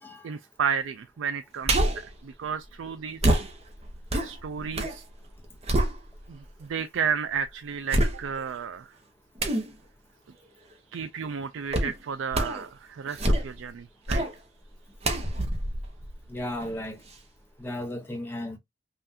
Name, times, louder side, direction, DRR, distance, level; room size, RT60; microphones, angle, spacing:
voice 1, 0.2-3.3 4.2-5.0 6.3-8.9 10.9-14.2, right 6 dB, 70° right, 0.4 m, -32 dB
sound 1, 1.6-2.1 3.2-5.0 5.3-6.4 7.0-7.1 7.9-8.6 9.4-9.7 11.7-12.0 12.3-12.7 13.1-13.7 14.1-14.3 15.0-16.7 17.1-17.2, right 1 dB, 30° right, 0.8 m, -26 dB
voice 2, 16.3-17.0 17.6-18.6, left 1 dB, 10° left, 0.8 m, -34 dB
5.6 x 2.4 x 2.7 m
head